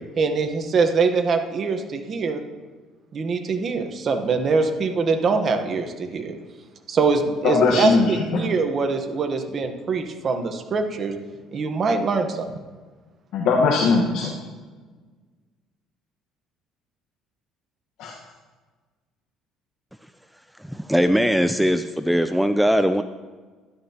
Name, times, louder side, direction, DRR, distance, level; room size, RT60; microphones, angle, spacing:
voice 1, 0.2-2.4 3.1-6.3 6.9-11.2 11.5-12.5, right 4 dB, 40° right, 6 dB, 1.1 m, -23 dB
voice 2, 7.4-8.4 13.3-14.3 18.0-18.1, left 4 dB, 70° left, -2 dB, 1.3 m, -20 dB
voice 3, 20.7-23.0, equal, ahead, 10 dB, 0.3 m, -20 dB
12.5 x 11.5 x 2.9 m, 1.4 s
cardioid pair, 120°, 0 cm